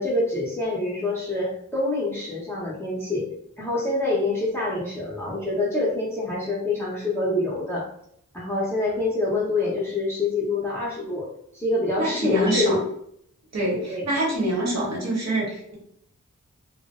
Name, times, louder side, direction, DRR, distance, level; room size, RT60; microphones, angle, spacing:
voice 1, 0.0-3.2 3.6-7.9 8.3-11.2 11.5-12.7 13.7-14.0, left 2 dB, 10° left, -7 dB, 0.7 m, -26 dB
voice 2, 12.0-12.8 13.5-15.7, right 1 dB, 55° right, -4 dB, 1.0 m, -25 dB
2.5 x 2.0 x 2.4 m, 0.70 s
wide cardioid pair, 70°, 31 cm